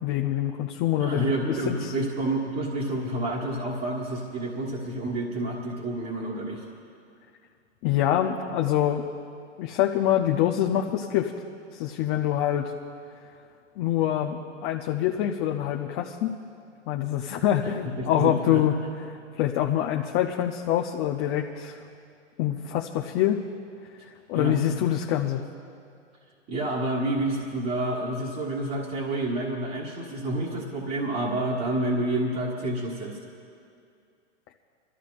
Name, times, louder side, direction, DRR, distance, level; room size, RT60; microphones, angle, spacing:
voice 1, 0.0-1.3 1.7-1.9 7.8-9.0 9.6-11.3 11.7-12.7 13.8-16.3 16.9-18.7 19.4-21.8 22.4-23.4 24.3-25.4, left 11 dB, 35° left, 2 dB, 0.6 m, -25 dB
voice 2, 1.0-6.7 17.6-18.6 24.3-24.6 26.5-33.2, right 1 dB, 25° right, -5 dB, 1.6 m, -29 dB
28.0 x 13.5 x 2.5 m, 2.4 s
hypercardioid pair, 125°, 35 cm